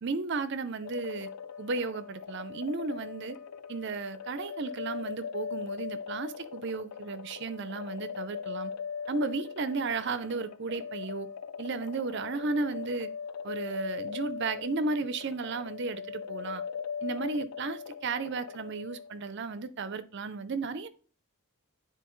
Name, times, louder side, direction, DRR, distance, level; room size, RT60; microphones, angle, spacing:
voice 1, 0.0-1.3 1.6-3.4 3.7-8.7 9.1-11.3 11.6-13.1 13.4-16.6 17.0-20.9, right 4 dB, 50° right, 0.5 m, -34 dB
sound 1, 0.8-19.3, left 6 dB, 80° left, 0.4 m, -40 dB
9.1 x 4.0 x 3.1 m
head